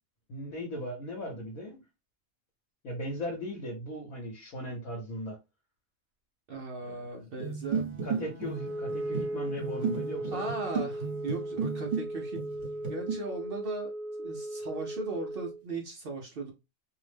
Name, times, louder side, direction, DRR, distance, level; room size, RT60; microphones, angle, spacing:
voice 1, 0.3-1.8 2.8-5.4 6.8-7.0 8.0-10.5, equal, 75° left, 1.2 m, -38 dB
voice 2, 6.5-8.3 10.3-12.4 12.9-13.9 14.2-16.5, right 3 dB, 65° right, 0.5 m, -38 dB
sound 1, 7.4-12.1 12.4-13.2, right 6 dB, 45° right, 1.0 m, -34 dB
Bowed string instrument, 7.8-12.1, left 6 dB, 35° left, 0.6 m, -53 dB
Wind instrument woodwind instrument, 8.5-15.6, right 1 dB, 20° right, 0.4 m, -37 dB
2.7 x 2.0 x 3.2 m
omnidirectional pair, 1.4 m